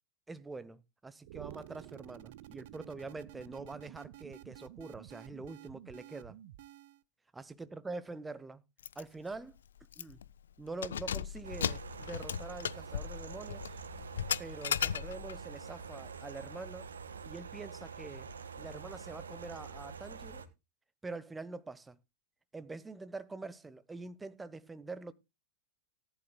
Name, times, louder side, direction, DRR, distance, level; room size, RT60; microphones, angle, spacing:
voice 1, 0.3-6.4 7.3-8.6 9.0-9.6 10.0-10.2 10.6-13.8 14.4-16.9 17.2-18.3 18.6-20.4 21.0-22.0 22.5-25.1, right 3 dB, 10° right, 0.9 m, -45 dB
sound 1, 1.2-7.0, right 13 dB, 55° right, 0.7 m, -51 dB
Keys jangling, 8.8-9.0 9.4-9.5 9.9-10.3 10.7-15.4, left 9 dB, 65° left, 0.5 m, -36 dB
sound 2, 11.4-20.5, right 5 dB, 70° right, 1.6 m, -46 dB
18.5 x 11.0 x 2.2 m
figure-of-eight pair, 90°, 0 cm